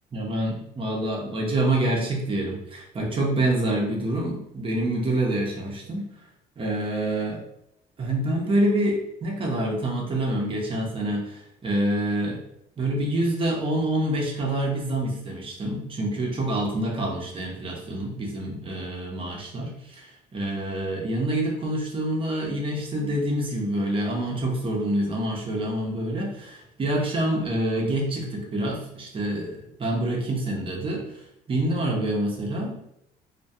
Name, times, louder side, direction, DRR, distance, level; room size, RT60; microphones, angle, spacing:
voice 1, 0.1-6.1 6.6-7.4 8.0-12.4 12.8-32.7, right 1 dB, 30° right, -1 dB, 0.6 m, -27 dB
2.2 x 2.2 x 2.6 m, 0.77 s
cardioid pair, 110°, 17 cm